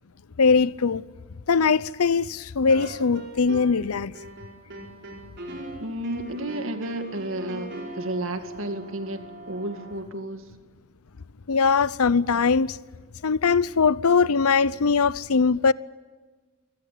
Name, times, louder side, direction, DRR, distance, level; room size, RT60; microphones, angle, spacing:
voice 1, 0.4-1.0 1.5-4.1 11.5-12.8 13.2-15.7, left 5 dB, 85° left, 0.7 m, -21 dB
sound 1, 2.7-3.9 4.1-10.0, right 1 dB, 50° right, 4.5 m, -40 dB
voice 2, 5.8-9.2 9.5-10.4, right 1 dB, 70° right, 2.2 m, -32 dB
26.0 x 18.5 x 8.4 m
head